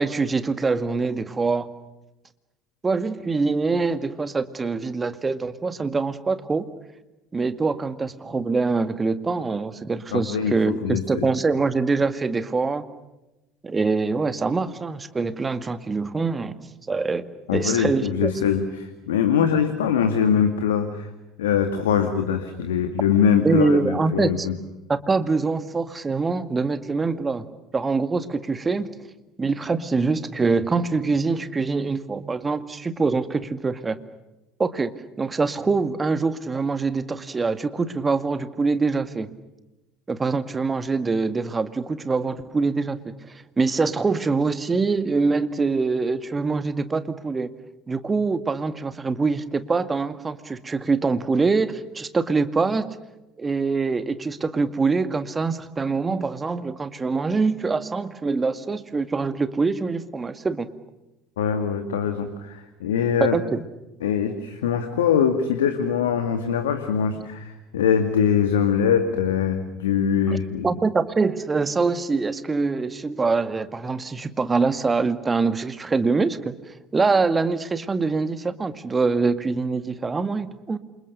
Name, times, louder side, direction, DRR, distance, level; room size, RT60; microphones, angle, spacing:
voice 1, 0.0-1.7 2.8-6.7 7.3-12.8 13.6-18.3 23.4-24.5 24.9-27.5 27.7-28.9 29.4-34.0 34.6-34.9 35.2-39.3 40.1-47.5 47.9-52.9 53.4-60.7 63.2-63.6 70.3-70.4 70.6-76.5 76.9-80.8, right 4 dB, 25° right, 11 dB, 2.1 m, -24 dB
voice 2, 10.1-11.3 17.5-21.1 21.4-24.5 61.4-63.4 64.0-70.7, left 7 dB, 75° left, 8 dB, 2.0 m, -22 dB
28.5 x 27.5 x 6.7 m, 1.0 s
hypercardioid pair, 65°, 0 cm